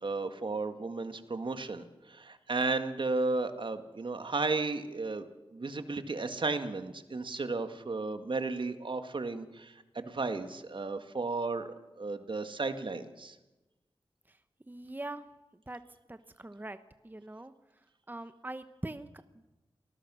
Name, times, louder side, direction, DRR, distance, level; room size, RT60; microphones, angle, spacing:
voice 1, 0.0-5.3 5.5-13.4, right 3 dB, 60° right, 8 dB, 1.9 m, -34 dB
voice 2, 14.7-15.3 15.5-15.8 16.1-16.8 17.0-19.1, right 2 dB, 20° right, 10 dB, 1.0 m, -43 dB
28.0 x 19.5 x 6.3 m, 1.1 s
cardioid pair, 50°, 10 cm